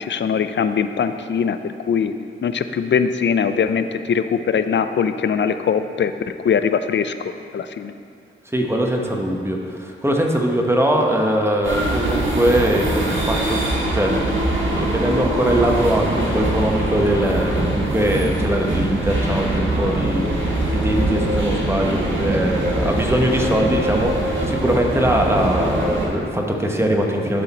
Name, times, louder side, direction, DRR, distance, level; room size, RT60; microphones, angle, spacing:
voice 1, 0.0-2.1 2.4-6.1 6.4-7.1 7.5-7.9, left 6 dB, 60° left, 10 dB, 0.4 m, -21 dB
voice 2, 8.4-13.6 13.9-14.2 14.6-27.4, right 1 dB, 10° right, 1 dB, 1.1 m, -21 dB
sound 1, 11.6-26.1, right 1 dB, 65° right, 1.8 m, -22 dB
11.0 x 3.8 x 4.3 m, 2.4 s
cardioid pair, 45°, 21 cm